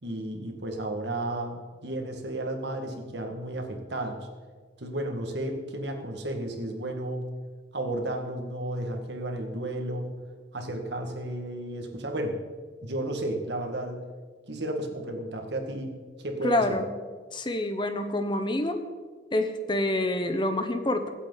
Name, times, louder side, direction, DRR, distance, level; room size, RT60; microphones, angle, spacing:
voice 1, 0.0-4.3 4.8-7.2 7.7-10.2 10.5-12.4 12.8-14.0 14.5-15.9 16.2-16.8, right 1 dB, 70° right, 3 dB, 1.9 m, -33 dB
voice 2, 16.4-16.8 17.3-18.8 19.3-21.1, left 1 dB, 25° left, 8 dB, 0.9 m, -27 dB
24.0 x 8.3 x 4.0 m, 1.5 s
head